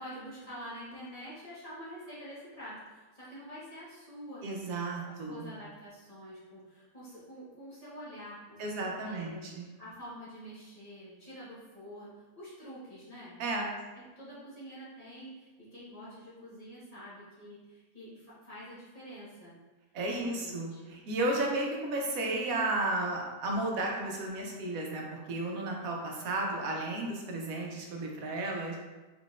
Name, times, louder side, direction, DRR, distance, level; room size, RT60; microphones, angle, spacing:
voice 1, 0.0-9.4 9.8-19.6 20.1-20.9, equal, 25° left, -10 dB, 1.3 m, -47 dB
voice 2, 4.4-5.5 8.6-9.7 13.4-13.7 19.9-28.8, right 2 dB, 75° right, 0 dB, 1.2 m, -33 dB
4.0 x 3.7 x 2.5 m, 1.2 s
omnidirectional pair, 1.5 m